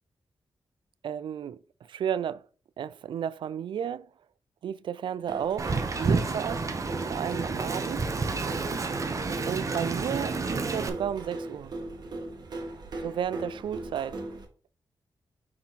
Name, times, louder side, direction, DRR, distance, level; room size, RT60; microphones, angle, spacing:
voice 1, 1.0-2.5 2.8-4.1 4.6-6.6 7.1-8.0 9.5-11.7 13.0-14.2, right 9 dB, 80° right, 0.4 m, -33 dB
sound 1, 5.3-14.4, right 2 dB, 60° right, 1.5 m, -39 dB
Wind, 5.6-10.9, right 4 dB, 40° right, 0.8 m, -30 dB
6.2 x 3.8 x 4.2 m
wide cardioid pair, 115°, 8 cm